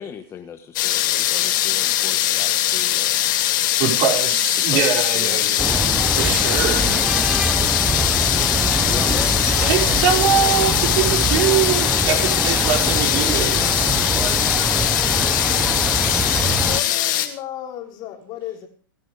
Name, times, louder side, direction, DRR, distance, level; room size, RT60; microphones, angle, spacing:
voice 1, 0.0-3.3 3.8-4.0 4.7-5.7 6.2-6.4 8.9-10.1, left 8 dB, 25° left, 6 dB, 1.3 m, -36 dB
sound 1, 0.8-17.3, left 13 dB, 60° left, 2.6 m, -21 dB
voice 2, 3.8-5.9 6.2-6.9 9.6-14.0, right 8 dB, 45° right, 1 dB, 5.2 m, -23 dB
sound 2, 5.6-16.8, right 2 dB, 5° right, 0.8 m, -24 dB
voice 3, 16.4-18.7, left 11 dB, 40° left, 2 dB, 3.5 m, -34 dB
29.0 x 9.8 x 3.4 m, 0.39 s
hypercardioid pair, 115°, 12 cm